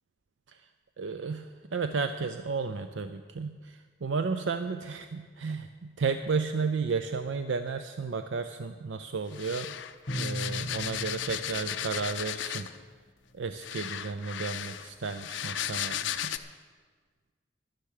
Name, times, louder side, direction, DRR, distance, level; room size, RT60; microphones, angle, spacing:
voice 1, 1.0-9.7 10.1-12.7 13.3-16.3, right 4 dB, 90° right, 9 dB, 0.5 m, -33 dB
sound 1, 9.3-12.8 13.6-16.4, left 10 dB, 85° left, 0.6 m, -35 dB
Bowed string instrument, 10.1-12.9, equal, 55° left, 2.3 m, -39 dB
12.0 x 10.5 x 6.5 m, 1.5 s
head